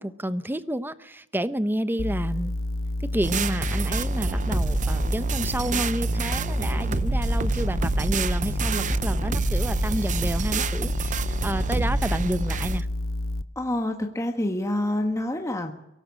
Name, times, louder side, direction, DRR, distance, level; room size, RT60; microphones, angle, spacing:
voice 1, 0.0-2.5 3.1-12.9, right 1 dB, 10° right, 13 dB, 0.9 m, -30 dB
sound 1, 2.0-13.4, left 1 dB, 65° left, 1.1 m, -29 dB
sound 2, 3.2-12.8, right 3 dB, 35° right, 0.7 m, -28 dB
voice 2, 13.5-15.7, left 1 dB, 15° left, 4 dB, 1.5 m, -27 dB
23.5 x 18.0 x 8.5 m, 0.89 s
head